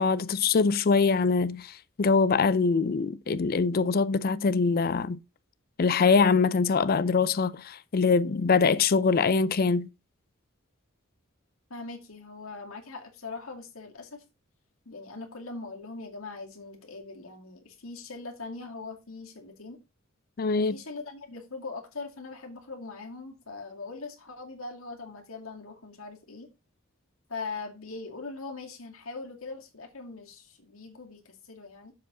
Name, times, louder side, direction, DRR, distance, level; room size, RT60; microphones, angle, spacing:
voice 1, 0.0-5.2 5.8-9.9 20.4-20.8, left 4 dB, 45° left, 0.4 m, -23 dB
voice 2, 11.7-14.2 14.9-19.8 20.6-26.5 27.3-31.9, left 3 dB, 90° left, 2.2 m, -41 dB
7.3 x 4.7 x 6.0 m
head